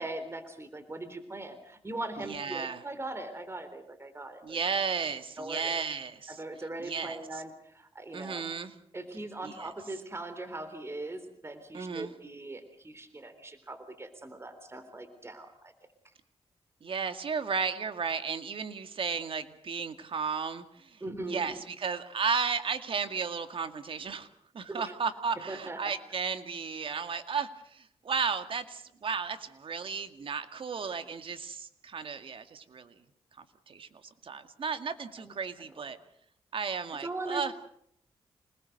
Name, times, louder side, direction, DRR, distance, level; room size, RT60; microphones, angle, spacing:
voice 1, 0.0-4.6 5.4-5.8 6.3-8.5 8.9-15.7 21.0-21.6 24.7-24.9 25.5-25.8 35.2-35.3 37.0-37.5, right 2 dB, 25° right, 10 dB, 3.6 m, -40 dB
voice 2, 2.2-2.8 4.4-6.4 6.8-7.2 8.1-8.7 9.4-9.7 11.7-12.1 16.8-21.0 21.3-24.3 24.5-32.9 33.4-33.9 34.2-36.0 36.5-37.5, right 5 dB, 60° right, 9 dB, 2.1 m, -34 dB
27.5 x 20.0 x 6.7 m, 0.70 s
cardioid pair, 75°, 10 cm